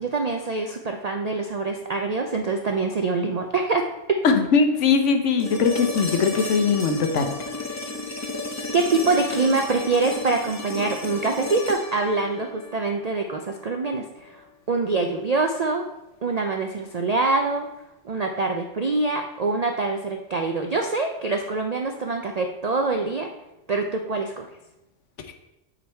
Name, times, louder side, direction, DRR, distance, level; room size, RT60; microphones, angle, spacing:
voice 1, 0.0-3.9 8.7-14.4 14.7-15.9 16.2-17.7 18.0-23.3 23.7-24.5, right 3 dB, 60° right, 4 dB, 0.4 m, -25 dB
voice 2, 4.2-7.3, left 5 dB, 70° left, 7 dB, 1.1 m, -20 dB
sound 1, 5.4-13.5 15.6-15.7, left 2 dB, 25° left, 0.3 m, -33 dB
8.4 x 4.0 x 4.4 m, 0.93 s
omnidirectional pair, 1.3 m